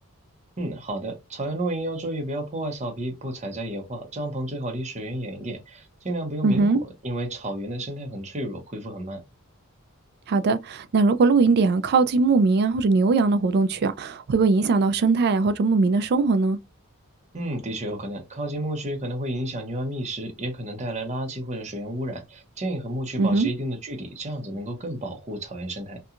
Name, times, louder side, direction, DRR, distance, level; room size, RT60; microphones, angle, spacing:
voice 1, 0.6-9.2 17.3-26.0, right 1 dB, 30° right, 0.7 m, -31 dB
voice 2, 6.4-6.8 10.3-16.6 23.2-23.5, right 4 dB, 45° right, 0.3 m, -20 dB
2.8 x 2.2 x 2.4 m
head